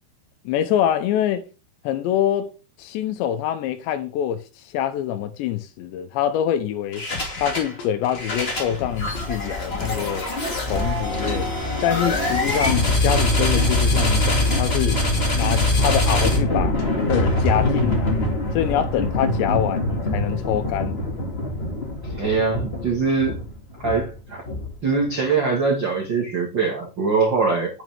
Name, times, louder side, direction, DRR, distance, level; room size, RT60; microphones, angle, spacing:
voice 1, 0.4-1.4 1.8-2.5 2.8-4.4 4.7-7.0 7.4-10.3 10.7-11.5 11.8-16.7 17.1-18.2 18.5-21.0, left 10 dB, 85° left, 3.2 m, -25 dB
sound 1, 6.9-7.7 8.0-25.0, left 1 dB, 30° left, 1.1 m, -23 dB
sound 2, 7.1-7.5 7.8-15.5 15.8-17.8, left 6 dB, 60° left, 3.7 m, -38 dB
voice 2, 21.7-23.4 23.8-24.4 24.8-27.8, right 4 dB, 75° right, 1.0 m, -23 dB
9.3 x 8.0 x 3.5 m
omnidirectional pair, 5.1 m